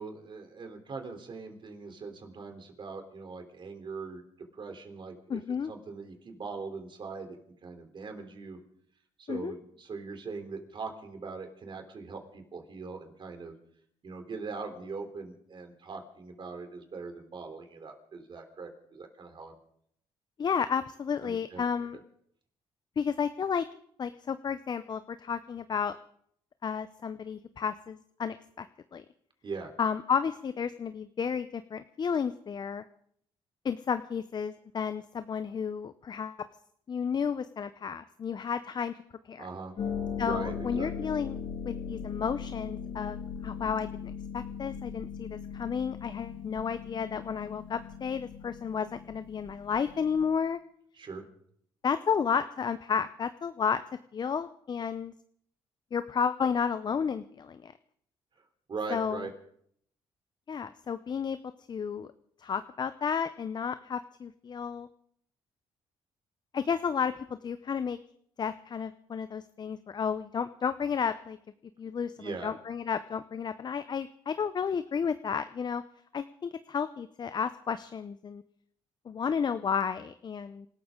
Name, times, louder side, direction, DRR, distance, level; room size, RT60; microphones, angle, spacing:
voice 1, 0.0-4.2 4.5-5.4 5.7-7.4 7.6-8.6 9.2-13.5 14.0-19.6 21.2-21.6 29.4-29.7 39.4-39.7 40.2-41.1 51.0-51.2 58.7-59.3 72.2-72.5, right 4 dB, 50° right, 5 dB, 3.4 m, -41 dB
voice 2, 5.3-5.7 9.3-9.5 20.4-22.0 23.0-23.7 24.0-26.0 26.6-28.7 28.9-29.0 29.8-32.8 33.6-36.4 36.9-39.0 39.2-39.4 40.2-41.4 41.7-43.9 44.3-50.6 51.8-53.8 54.1-55.1 55.9-57.7 58.9-59.2 60.5-61.4 61.7-62.1 62.4-64.9 66.5-68.0 68.4-71.4 71.8-75.8 76.1-78.4 79.1-80.7, left 6 dB, 40° left, 12 dB, 0.6 m, -32 dB
Harp, 39.8-50.3, left 7 dB, 65° left, 5.3 m, -39 dB
27.0 x 13.0 x 3.7 m, 0.66 s
cardioid pair, 80°, 11 cm